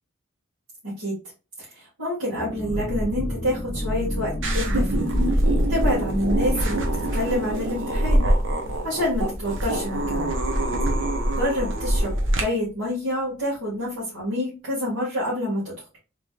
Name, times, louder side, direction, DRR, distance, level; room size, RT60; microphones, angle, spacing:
voice 1, 0.8-1.2 1.6-5.1 5.7-8.2 8.8-10.3 11.3-12.1 12.4-15.7, left 1 dB, 80° right, -9 dB, 1.9 m, -27 dB
sound 1, 2.3-11.7 12.0-12.1 12.4-12.7, equal, 15° left, 0.5 m, -34 dB
sound 2, 4.4-12.4, right 1 dB, 60° right, 0.8 m, -23 dB
3.9 x 3.1 x 2.3 m, 0.31 s
head